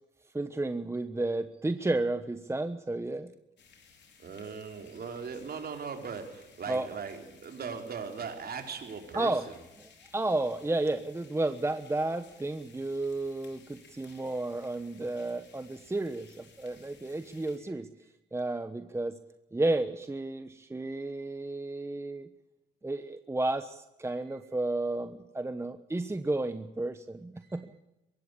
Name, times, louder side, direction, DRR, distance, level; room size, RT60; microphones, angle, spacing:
voice 1, 0.3-3.3 6.7-6.9 9.1-9.4 9.8-17.9 18.3-19.2 19.5-22.3 22.8-27.7, right 2 dB, 15° right, 10 dB, 1.2 m, -32 dB
sound 1, 3.6-17.6, left 5 dB, 65° left, 5.1 m, -59 dB
voice 2, 4.2-9.4 20.8-21.1 27.5-27.6, right 6 dB, 50° right, 5 dB, 4.3 m, -39 dB
22.5 x 16.0 x 8.5 m, 0.94 s
cardioid pair, 90°, 20 cm